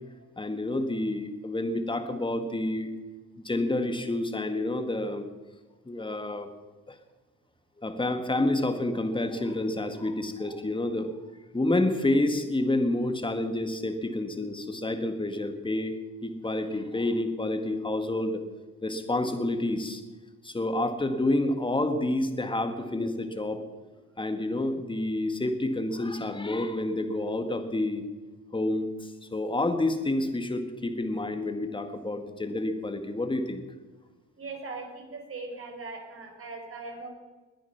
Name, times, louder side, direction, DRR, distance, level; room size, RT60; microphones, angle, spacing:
voice 1, 0.4-2.9 3.4-5.3 5.9-6.5 6.9-7.0 7.8-11.1 11.5-16.0 16.2-18.4 18.8-20.0 20.4-23.6 24.2-28.0 28.5-33.6, left 2 dB, 15° left, 7 dB, 1.9 m, -29 dB
voice 2, 34.4-37.1, right 3 dB, 45° right, 3 dB, 4.6 m, -40 dB
21.0 x 9.1 x 5.9 m, 1.2 s
cardioid pair, 90°, 30 cm